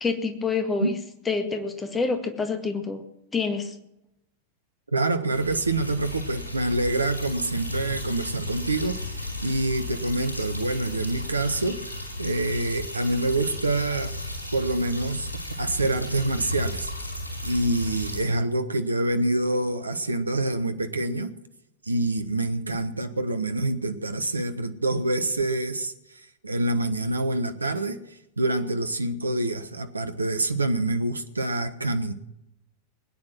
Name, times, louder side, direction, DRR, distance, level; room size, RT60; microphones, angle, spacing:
voice 1, 0.0-1.0 1.3-3.0 3.3-3.8, left 4 dB, 15° left, 6 dB, 2.0 m, -27 dB
voice 2, 4.9-11.8 12.2-14.2 14.5-16.9 17.4-21.3 21.9-25.9 26.4-28.0 28.4-32.1, right 2 dB, 80° right, 9 dB, 1.2 m, -26 dB
sound 1, 5.3-18.2, left 1 dB, 85° left, 4.9 m, -34 dB
21.0 x 9.9 x 6.1 m, 0.83 s
figure-of-eight pair, 90°, 0 cm